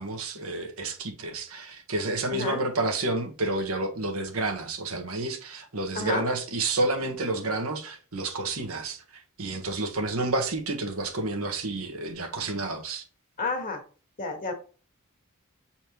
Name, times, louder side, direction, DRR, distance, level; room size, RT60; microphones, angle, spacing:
voice 1, 0.0-13.0, right 2 dB, 80° right, 1.4 m, -30 dB
voice 2, 2.3-2.6 5.9-6.3 13.4-13.8 14.2-14.5, left 3 dB, 40° left, 1.7 m, -30 dB
7.1 x 4.4 x 3.1 m
head